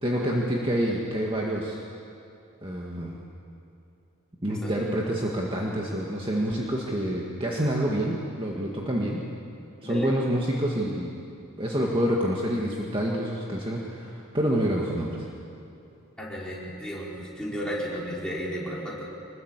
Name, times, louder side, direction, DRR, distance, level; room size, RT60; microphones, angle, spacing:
voice 1, 0.0-1.8 2.6-3.2 4.4-9.2 9.8-11.1 11.6-15.3, equal, 25° right, -2 dB, 1.9 m, -27 dB
voice 2, 16.2-19.0, equal, 5° left, -6 dB, 5.0 m, -33 dB
25.0 x 21.0 x 8.2 m, 2.7 s
head